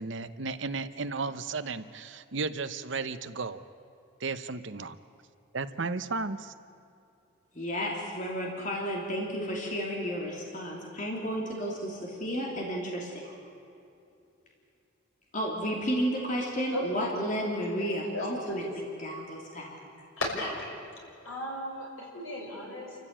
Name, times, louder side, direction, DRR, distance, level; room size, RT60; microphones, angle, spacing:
voice 1, 0.0-3.6 4.2-5.0 5.5-6.5, right 4 dB, 60° right, 11 dB, 0.9 m, -34 dB
voice 2, 7.5-13.3 15.3-19.8, equal, 40° left, -2 dB, 3.1 m, -32 dB
voice 3, 16.7-17.7 18.1-18.7 20.2-20.7 21.2-23.0, left 1 dB, 85° left, -1 dB, 6.0 m, -36 dB
28.0 x 14.5 x 8.9 m, 2.7 s
head